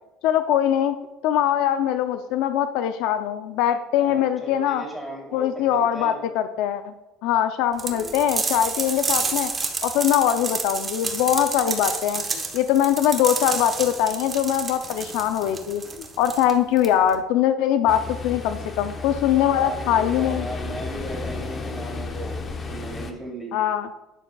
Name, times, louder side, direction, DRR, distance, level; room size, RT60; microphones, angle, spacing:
voice 1, 0.2-1.0 1.2-4.8 5.3-6.9 7.2-9.5 9.8-20.5 23.5-23.9, left 10 dB, 70° left, 9 dB, 0.5 m, -22 dB
voice 2, 4.0-6.2 7.8-8.2 19.5-22.4 22.6-23.5, right 1 dB, 5° left, -2 dB, 3.0 m, -36 dB
sound 1, 7.8-17.2, right 4 dB, 20° right, 1.1 m, -29 dB
Ocean, 17.9-23.1, left 3 dB, 25° left, 0.8 m, -33 dB
11.5 x 9.8 x 2.3 m, 1.0 s
cardioid pair, 145°, 0 cm